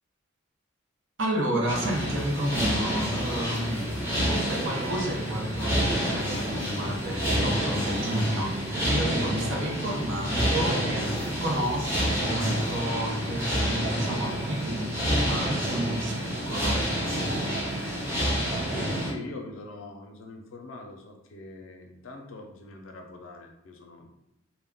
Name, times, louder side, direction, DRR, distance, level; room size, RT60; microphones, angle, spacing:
voice 1, 1.2-16.9, right 1 dB, 65° right, 0 dB, 0.6 m, -31 dB
sound 1, 1.7-19.1, equal, 15° right, 0.7 m, -28 dB
voice 2, 18.7-24.1, left 2 dB, 80° left, 3 dB, 0.5 m, -43 dB
2.2 x 2.0 x 3.5 m, 0.85 s
head